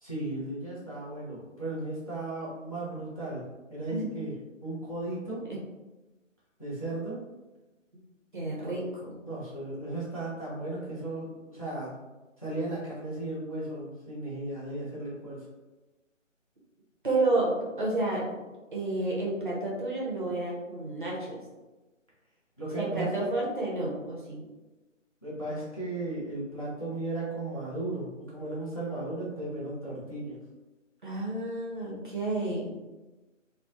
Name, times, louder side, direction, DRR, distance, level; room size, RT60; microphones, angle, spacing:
voice 1, 0.0-4.3 4.6-5.5 6.6-7.2 8.6-8.8 9.2-12.0 12.4-15.5 22.6-23.3 25.2-30.4, right 2 dB, 30° left, -8 dB, 0.5 m, -35 dB
voice 2, 8.3-9.2 17.0-18.2 18.7-21.4 22.7-24.4 31.0-32.8, right 2 dB, 40° right, -4 dB, 0.5 m, -30 dB
2.5 x 2.0 x 2.4 m, 1.1 s
figure-of-eight pair, 150°, 39 cm